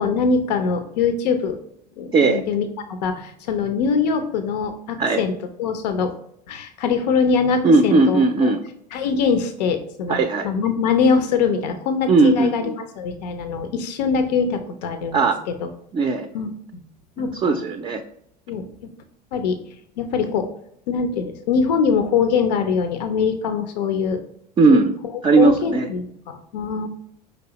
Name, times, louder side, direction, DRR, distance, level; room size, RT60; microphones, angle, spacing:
voice 1, 0.0-1.6 2.0-5.3 5.6-6.1 6.5-8.5 8.9-10.2 10.4-15.2 15.6-15.7 16.3-16.8 17.2-17.6 18.5-18.6 19.3-19.6 20.0-20.5 20.9-24.2 24.7-24.8 25.4-26.9, left 5 dB, 75° left, 7 dB, 0.5 m, -23 dB
voice 2, 7.6-8.6 10.1-10.5 12.1-12.7 15.1-15.4 15.9-16.3 17.2-18.0 24.6-24.9 25.2-25.9, right 3 dB, 25° right, 6 dB, 0.4 m, -17 dB
5.1 x 3.3 x 2.8 m, 0.72 s
hypercardioid pair, 80°, 21 cm